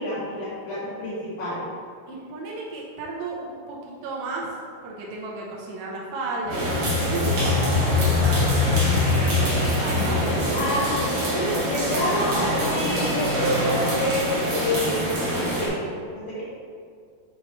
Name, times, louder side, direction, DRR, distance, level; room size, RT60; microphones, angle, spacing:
voice 1, 0.0-1.7 10.5-16.4, left 1 dB, 60° left, -12 dB, 2.5 m, -28 dB
voice 2, 2.1-4.5 4.8-10.2, right 3 dB, 90° right, -3 dB, 3.0 m, -33 dB
sound 1, 6.5-11.4, left 4 dB, 90° left, 3.0 m, -24 dB
sound 2, 6.5-15.7, right 1 dB, 70° right, 1.2 m, -26 dB
7.6 x 4.2 x 3.0 m, 2.2 s
omnidirectional pair, 4.9 m